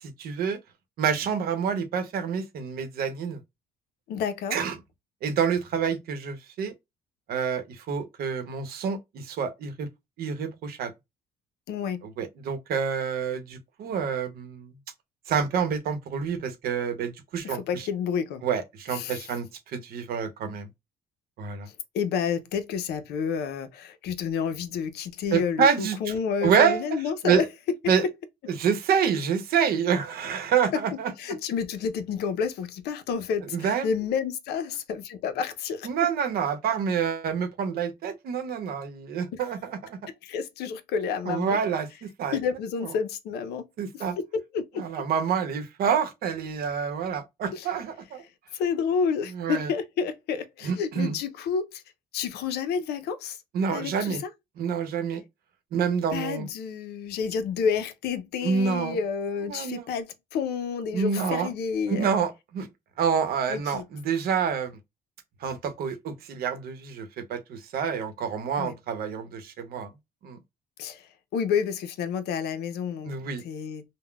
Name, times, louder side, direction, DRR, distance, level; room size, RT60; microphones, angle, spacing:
voice 1, 0.0-0.6 1.0-3.4 4.5-4.8 5.2-6.7 7.3-9.9 10.2-10.9 12.0-14.7 15.3-17.9 18.4-20.7 21.4-21.7 25.3-26.0 26.4-26.9 27.2-27.4 27.9-28.0 28.6-31.1 33.5-33.9 35.8-40.0 41.2-42.4 42.8-42.9 43.8-44.2 44.8-48.2 49.3-49.7 50.6-51.2 53.5-54.2 54.6-55.2 55.7-56.5 58.4-59.0 59.5-59.9 60.9-61.5 61.9-62.7 63.0-64.8 65.4-69.9 70.2-70.4 73.0-73.4, right 7 dB, 65° right, 0.8 m, -27 dB
voice 2, 4.1-4.6 11.7-12.0 17.4-18.4 18.9-19.2 21.9-27.5 27.8-27.9 30.7-30.8 31.2-35.9 39.3-39.4 40.2-41.6 42.3-43.7 43.9-44.0 44.3-44.8 47.5-47.7 48.5-51.8 52.1-53.4 53.7-54.2 56.1-62.1 63.5-63.8 68.6-68.7 70.8-71.1 71.3-73.1 73.4-73.8, left 6 dB, 75° left, 0.6 m, -29 dB
3.7 x 2.1 x 2.3 m
cardioid pair, 110°, 17 cm